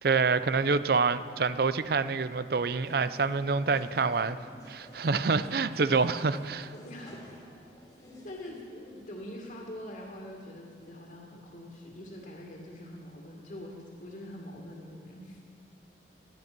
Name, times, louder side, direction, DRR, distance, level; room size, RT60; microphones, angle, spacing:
voice 1, 0.0-4.4 4.7-6.7, right 4 dB, 60° right, 14 dB, 0.5 m, -27 dB
sound 1, 2.8-8.6, left 1 dB, 20° left, 2.4 m, -52 dB
voice 2, 6.7-7.4 8.2-15.4, left 1 dB, 45° left, -1 dB, 2.3 m, -44 dB
19.0 x 12.5 x 6.1 m, 2.3 s
head